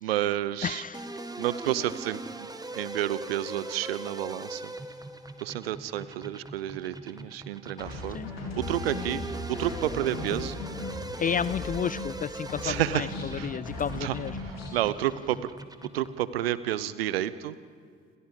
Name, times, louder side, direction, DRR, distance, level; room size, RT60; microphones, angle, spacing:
voice 1, 0.0-0.8 1.4-2.2 2.7-4.7 5.4-8.2 8.6-10.5 12.6-13.6 13.9-15.4 15.9-17.6, right 13 dB, 75° right, 17 dB, 0.8 m, -30 dB
voice 2, 0.6-1.0 8.1-8.3 11.2-13.1 13.4-14.3, left 7 dB, 30° left, 18 dB, 0.5 m, -31 dB
sound 1, 0.9-16.3, right 2 dB, 15° right, 1.9 m, -41 dB
sound 2, 7.8-12.2 12.5-14.8, left 2 dB, 80° left, 4.8 m, -38 dB
29.5 x 26.0 x 5.2 m, 2.2 s
figure-of-eight pair, 50°, 30 cm